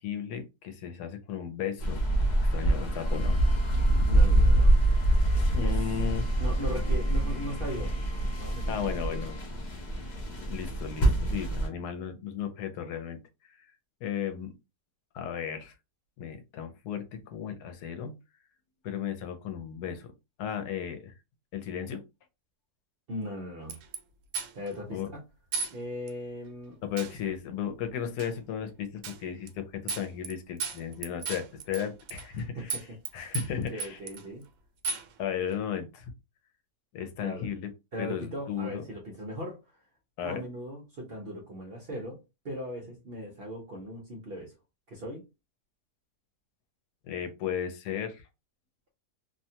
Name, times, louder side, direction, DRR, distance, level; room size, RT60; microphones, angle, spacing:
voice 1, 0.0-2.0 2.5-3.4 5.5-6.2 8.7-9.4 10.5-13.2 13.6-13.7 14.0-14.5 15.1-15.7 16.2-18.1 18.8-20.1 20.4-21.1 21.5-22.0 24.9-25.1 26.8-32.8 33.1-34.0 35.2-36.1 36.9-37.7 38.0-38.8 40.2-40.4 47.0-48.2, left 8 dB, 80° left, 1.1 m, -35 dB
sound 1, 1.8-11.7, right 1 dB, 55° left, 0.5 m, -25 dB
Trumpet, 3.0-9.4, equal, 35° right, 1.3 m, -51 dB
voice 2, 4.0-4.7 5.6-5.8 6.4-7.9 8.4-9.2 23.1-23.7 24.5-25.2 25.7-26.8 32.3-33.0 33.7-34.4 37.2-37.5 37.9-39.7 40.2-44.5 44.9-45.2, equal, 50° right, 0.7 m, -39 dB
sound 2, 23.7-24.0 24.3-24.7 25.5-25.8 26.1-26.2 27.0-27.2 28.2-28.3 29.0-29.2 29.5-29.6 29.9-30.3 30.6-32.4 32.7-33.1 33.3-34.2 34.8-35.1, right 5 dB, 70° right, 1.0 m, -34 dB
2.8 x 2.2 x 2.7 m
omnidirectional pair, 1.7 m